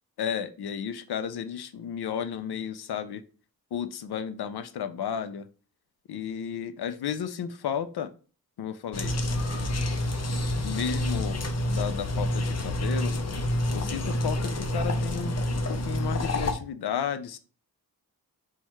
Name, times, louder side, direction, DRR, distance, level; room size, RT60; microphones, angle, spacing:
voice 1, 0.2-3.2 3.7-5.5 6.1-8.1 8.6-9.2 10.6-11.4 11.7-13.1 13.7-17.4, left 8 dB, 85° left, 11 dB, 0.5 m, -33 dB
sound 1, 8.9-16.5, left 1 dB, 45° left, 0.6 m, -28 dB
4.5 x 2.3 x 4.4 m, 0.36 s
wide cardioid pair, 90°, 37 cm